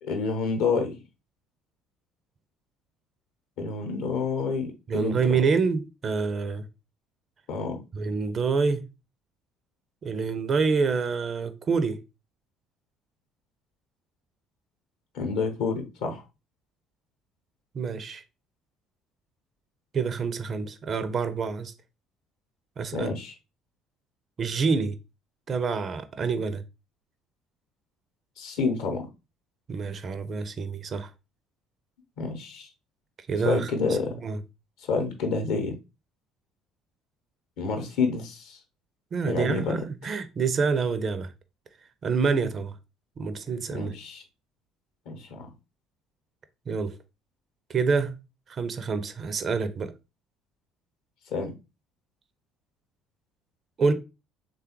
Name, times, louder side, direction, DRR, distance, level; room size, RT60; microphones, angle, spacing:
voice 1, 0.0-0.9 3.6-5.4 7.5-7.8 15.1-16.2 22.9-23.3 28.4-29.1 32.2-32.7 33.4-34.1 34.8-35.7 37.6-38.6 39.2-39.8 43.7-44.2 45.1-45.5 51.3-51.5, left 4 dB, 60° left, 0.7 m, -28 dB
voice 2, 4.9-6.7 7.9-8.8 10.0-12.0 17.7-18.2 19.9-21.7 22.8-23.1 24.4-25.0 25.5-26.6 29.7-31.1 33.3-33.7 34.2-34.4 39.1-41.3 42.0-42.8 43.2-43.9 46.7-47.0 47.7-48.1 48.5-49.9 53.8-53.9, right 5 dB, 40° right, 0.4 m, -27 dB
3.3 x 2.2 x 2.9 m
figure-of-eight pair, 55°, 0 cm